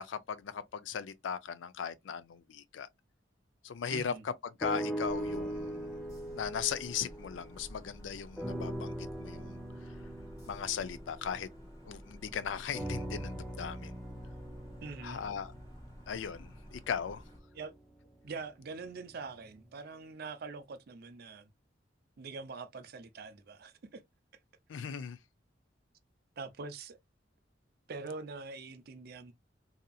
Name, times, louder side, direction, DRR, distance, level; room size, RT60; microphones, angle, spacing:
voice 1, 0.0-2.9 3.6-5.9 6.4-9.6 10.5-11.5 11.9-13.9 15.0-15.5 16.1-17.2 24.7-25.2, left 7 dB, 85° left, 0.4 m, -38 dB
voice 2, 3.9-4.2 14.8-15.2 17.5-17.7 18.2-21.5 22.2-24.0 26.4-27.0 27.9-29.3, right 4 dB, 55° right, 0.5 m, -44 dB
sound 1, 4.6-8.0 8.4-12.1 12.7-17.0 17.6-17.7, right 1 dB, ahead, 0.4 m, -40 dB
sound 2, 5.0-17.4, equal, 20° left, 1.0 m, -53 dB
2.8 x 2.5 x 2.3 m
head